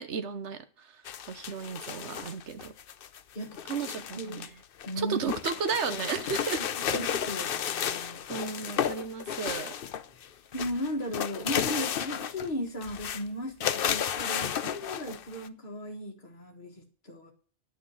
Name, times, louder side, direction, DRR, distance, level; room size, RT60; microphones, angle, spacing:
voice 1, 0.0-2.7 3.7-4.6 5.0-6.6 6.9-7.0 8.3-9.7 14.6-14.7, right 6 dB, 70° right, 1.4 m, -34 dB
sound 1, 1.0-4.5 4.8-10.3 10.5-12.5 12.8-13.2 13.6-15.5, left 9 dB, 55° left, 0.7 m, -33 dB
voice 2, 3.3-4.5 4.9-5.3 6.3-6.4 6.9-8.3 10.2-10.3 10.5-17.3, left 1 dB, 40° left, 1.7 m, -36 dB
10.0 x 6.3 x 8.4 m
omnidirectional pair, 1.3 m